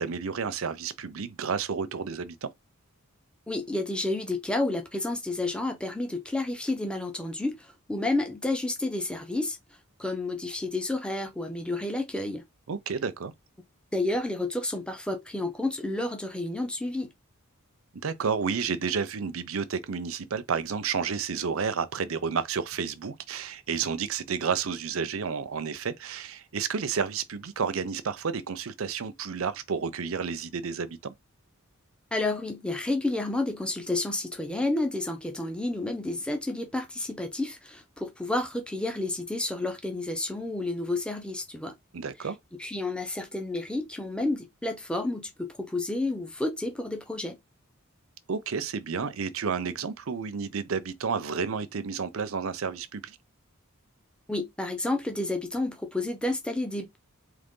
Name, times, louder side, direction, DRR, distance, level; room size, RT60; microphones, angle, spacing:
voice 1, 0.0-2.5 12.7-13.3 18.0-31.1 41.9-42.4 48.3-53.2, right 6 dB, 70° right, 0.6 m, -31 dB
voice 2, 3.5-9.6 10.0-12.4 13.9-17.1 32.1-41.7 42.6-47.4 54.3-57.0, left 2 dB, 5° left, 0.7 m, -30 dB
3.9 x 3.0 x 3.7 m
head